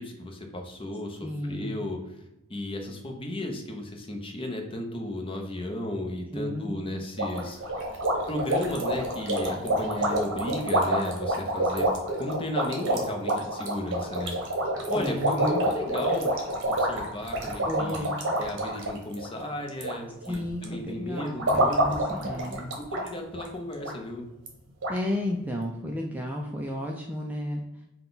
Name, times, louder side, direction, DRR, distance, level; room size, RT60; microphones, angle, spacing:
voice 1, 0.0-2.1 2.5-7.6 8.3-11.9 12.2-14.3 14.9-16.3 16.6-18.1 18.4-22.0 22.6-24.2, left 1 dB, 25° left, 3 dB, 0.6 m, -34 dB
voice 2, 1.2-1.8 6.3-6.7 14.9-15.5 17.7-18.1 20.3-22.6 24.9-27.6, left 1 dB, 5° right, 0 dB, 0.3 m, -32 dB
sound 1, 7.2-19.9 20.2-20.6 21.2-23.1 23.4-23.5 23.8-23.9 24.5-24.6 24.8-25.0, right 1 dB, 55° right, 1.0 m, -27 dB
5.7 x 2.3 x 3.9 m, 0.94 s
head